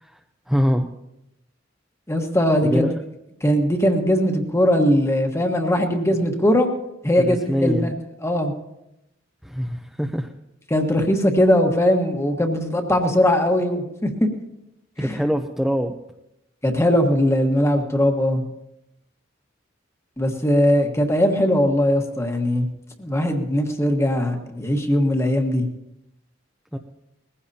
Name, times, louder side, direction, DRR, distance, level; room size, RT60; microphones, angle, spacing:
voice 1, 0.5-0.9 2.6-3.0 7.2-7.9 9.4-10.3 15.0-15.9 26.7-26.8, equal, ahead, 2 dB, 0.6 m, -23 dB
voice 2, 2.1-2.8 3.4-6.7 7.0-7.9 8.2-8.5 10.7-14.3 15.0-15.2 16.6-18.4 20.2-22.7 23.0-25.6, left 1 dB, 15° left, 4 dB, 1.4 m, -20 dB
20.5 x 15.5 x 2.8 m, 0.86 s
head